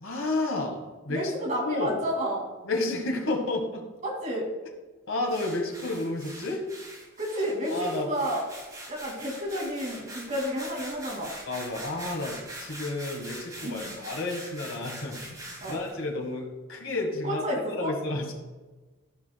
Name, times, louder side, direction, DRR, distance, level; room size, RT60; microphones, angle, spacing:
voice 1, 0.0-1.3 1.6-2.0 2.6-3.8 5.1-6.6 7.7-8.1 11.5-18.3, left 2 dB, 80° left, 2 dB, 1.6 m, -31 dB
voice 2, 1.1-2.4 4.0-4.5 7.2-8.4 8.9-11.3 13.6-13.9 15.6-15.8 17.2-17.9, equal, 35° right, -2 dB, 2.3 m, -31 dB
sound 1, 5.3-15.9, right 1 dB, 20° right, 2.0 m, -43 dB
14.5 x 5.9 x 2.2 m, 1.2 s
head